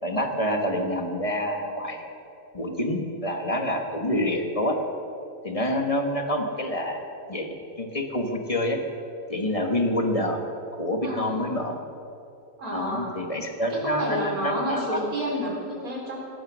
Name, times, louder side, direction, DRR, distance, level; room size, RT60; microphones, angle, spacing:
voice 1, 0.0-2.0 2.5-4.8 5.4-7.0 7.3-7.5 7.8-8.8 9.3-10.4 10.7-11.8 12.7-15.0, left 1 dB, 25° left, 4 dB, 1.4 m, -27 dB
voice 2, 11.0-11.4 12.6-13.2 13.7-16.2, equal, 90° right, -2 dB, 4.2 m, -30 dB
16.5 x 13.0 x 6.3 m, 2.7 s
omnidirectional pair, 1.5 m